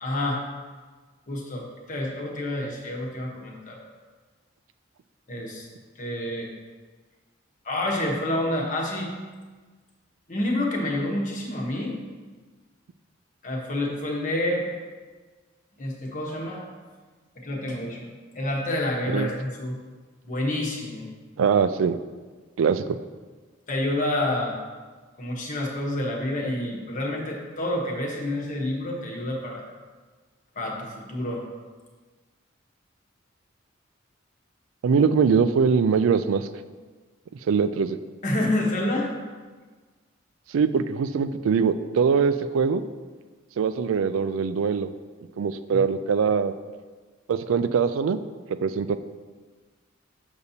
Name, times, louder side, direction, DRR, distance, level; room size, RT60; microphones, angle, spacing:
voice 1, 0.0-0.4 1.3-3.8 5.3-5.7 6.0-6.5 7.6-9.1 10.3-12.0 13.4-14.7 15.8-16.6 17.4-18.1 18.3-19.8 20.2-21.1 23.7-24.6 25.2-29.6 30.5-31.5 38.2-39.1 45.7-45.8, left 1 dB, 40° left, -1 dB, 1.1 m, -28 dB
voice 2, 21.4-22.0 22.6-23.0 34.8-36.5 37.5-38.0 40.5-42.8 43.6-44.9 45.4-46.5 47.3-48.2 48.6-49.0, right 6 dB, 85° right, 12 dB, 0.3 m, -22 dB
7.0 x 6.7 x 2.8 m, 1.4 s
head